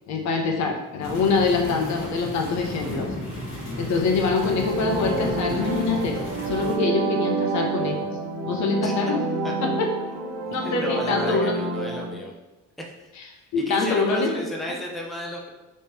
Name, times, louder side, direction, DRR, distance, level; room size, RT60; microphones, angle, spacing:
voice 1, 0.1-3.1 3.8-6.2 6.5-8.0 8.5-9.2 9.6-9.9 10.5-11.5 13.5-14.3, left 4 dB, 65° left, 2 dB, 0.8 m, -24 dB
sound 1, 1.0-6.7, left 1 dB, 45° left, 1.5 m, -33 dB
sound 2, 4.2-12.1, right 3 dB, 55° right, 0.9 m, -28 dB
voice 2, 10.6-12.3 13.6-15.5, equal, ahead, -1 dB, 0.5 m, -33 dB
3.6 x 3.1 x 4.2 m, 1.0 s
cardioid pair, 135°, 30 cm